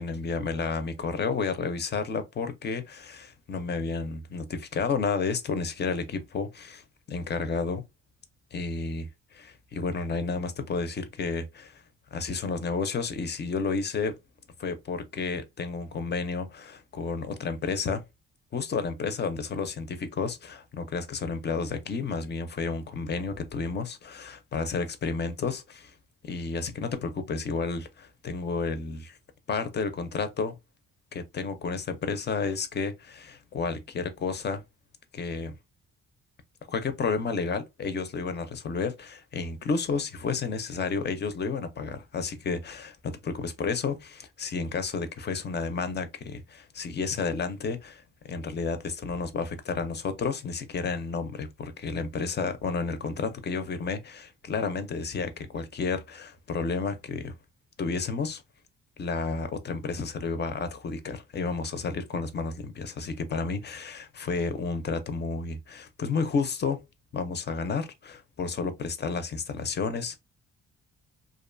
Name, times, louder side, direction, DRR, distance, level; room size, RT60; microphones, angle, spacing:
voice 1, 0.0-7.8 8.5-11.8 12.1-14.2 14.6-18.0 18.5-25.9 26.2-29.2 29.5-30.5 31.1-34.6 35.1-35.5 36.7-57.3 57.8-58.4 59.0-66.8 67.1-70.2, left 4 dB, 35° left, 0.5 m, -31 dB
2.5 x 2.2 x 2.5 m
cardioid pair, 90°, 30 cm